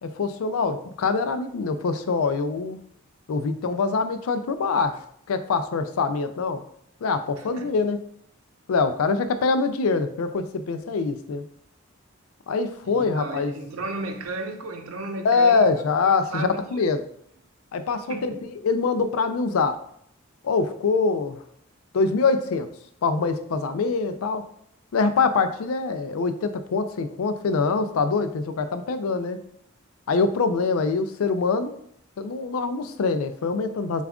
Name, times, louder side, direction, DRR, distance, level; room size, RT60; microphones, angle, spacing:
voice 1, 0.0-2.8 3.3-6.6 7.0-8.0 8.7-11.4 12.5-13.5 15.2-17.0 17.7-19.8 20.4-21.4 21.9-22.7 23.0-24.5 24.9-29.4 30.1-31.7 32.2-34.0, left 4 dB, 85° left, 0.4 m, -24 dB
voice 2, 12.9-15.7 16.0-16.9 18.1-18.4, right 2 dB, 80° right, 0.6 m, -34 dB
6.9 x 2.4 x 2.3 m
head